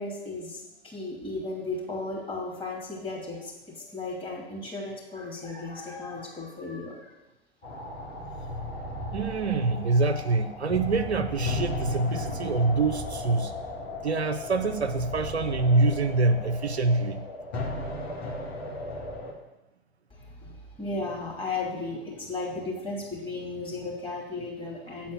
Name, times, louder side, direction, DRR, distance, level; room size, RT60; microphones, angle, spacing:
voice 1, 0.0-7.1 20.1-25.1, left 3 dB, 15° left, -3 dB, 2.8 m, -35 dB
sound 1, 7.6-19.3, left 2 dB, 75° left, 1.9 m, -35 dB
voice 2, 9.1-13.5 14.0-17.3, right 3 dB, 90° right, 8 dB, 0.6 m, -25 dB
8.5 x 4.3 x 7.0 m, 1.0 s
figure-of-eight pair, 85°, 32 cm